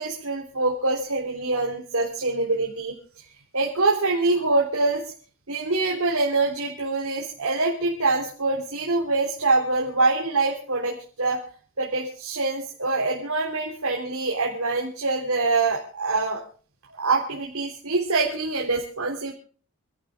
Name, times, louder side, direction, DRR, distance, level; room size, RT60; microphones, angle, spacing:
voice 1, 0.0-2.9 3.5-5.0 5.5-11.5 11.8-16.4 17.0-19.3, right 3 dB, 75° right, -2 dB, 3.8 m, -25 dB
29.5 x 12.5 x 2.5 m, 0.42 s
head